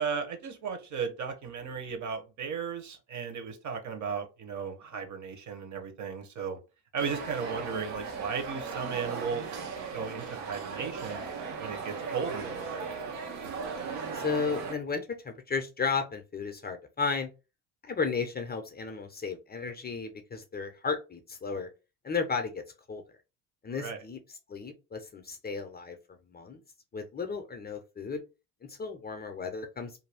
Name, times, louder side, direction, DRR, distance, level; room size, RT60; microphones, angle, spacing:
voice 1, 0.0-6.6 6.9-9.5 9.9-11.2 11.6-12.9 23.7-24.0, right 6 dB, 35° right, 0.9 m, -35 dB
sound 1, 7.0-14.7, right 5 dB, 75° right, 1.0 m, -37 dB
voice 2, 14.1-17.3 17.8-21.7 22.0-22.6 22.9-23.0 23.6-24.2 24.5-26.0 26.3-26.6 26.9-28.2 28.6-30.0, left 5 dB, 20° left, 0.5 m, -34 dB
2.6 x 2.3 x 3.4 m
hypercardioid pair, 70°, 50 cm